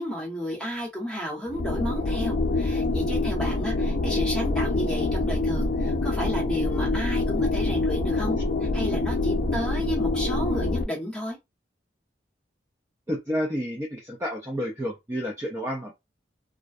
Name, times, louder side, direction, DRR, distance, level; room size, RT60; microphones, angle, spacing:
voice 1, 0.0-11.4, equal, 5° left, 0.9 m, -32 dB
sound 1, 1.5-10.8, left 2 dB, 55° left, 0.4 m, -26 dB
voice 2, 13.1-15.9, equal, 15° right, 0.4 m, -30 dB
2.5 x 2.2 x 2.3 m
head